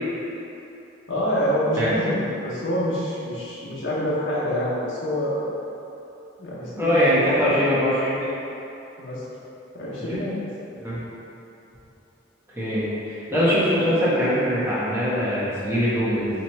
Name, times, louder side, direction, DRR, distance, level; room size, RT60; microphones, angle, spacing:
voice 1, 1.1-5.5 6.4-7.5 9.0-9.3 9.7-10.3, equal, 90° left, -7 dB, 0.8 m, -26 dB
voice 2, 6.7-8.2 10.1-10.2 10.8-11.0 12.5-16.3, equal, 15° right, -10 dB, 0.9 m, -22 dB
3.0 x 2.9 x 4.3 m, 2.9 s
head